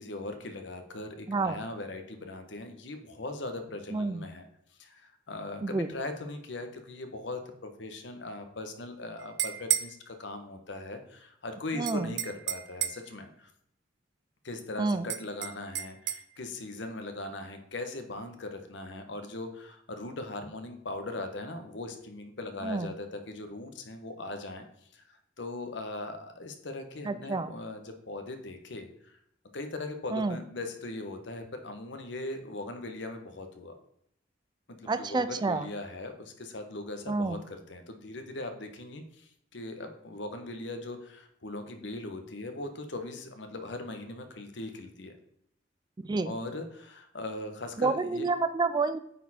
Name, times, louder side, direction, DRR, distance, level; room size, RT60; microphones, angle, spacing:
voice 1, 0.0-4.5 4.8-13.5 14.4-24.6 24.9-29.2 29.5-33.7 34.8-45.1 46.2-48.3, left 2 dB, 70° left, 7 dB, 1.1 m, -40 dB
voice 2, 1.3-1.6 3.9-4.2 5.6-5.9 11.8-12.1 14.8-15.1 22.6-22.9 27.0-27.5 30.1-30.4 34.9-35.7 37.1-37.4 46.1-46.3 47.8-49.0, right 3 dB, 25° right, 12 dB, 0.3 m, -29 dB
sound 1, 9.2-9.9 11.9-13.1 15.1-16.2, right 12 dB, 70° right, 0.6 m, -32 dB
9.0 x 4.4 x 4.2 m, 0.73 s
head